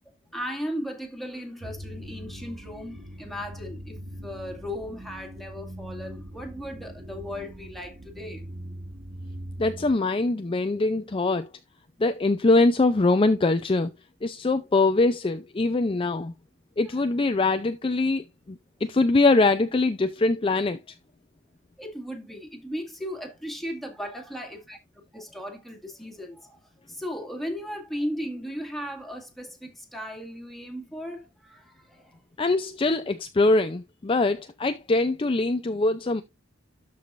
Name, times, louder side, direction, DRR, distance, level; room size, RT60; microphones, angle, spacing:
voice 1, 0.3-8.4 21.8-24.8 25.1-32.2, equal, ahead, 2.0 m, -36 dB
sound 1, 1.6-9.9, equal, 35° right, 1.0 m, -41 dB
voice 2, 9.6-11.5 12.0-13.9 14.2-16.3 16.8-20.8 32.4-36.2, left 2 dB, 25° left, 0.5 m, -23 dB
12.5 x 4.9 x 2.5 m
head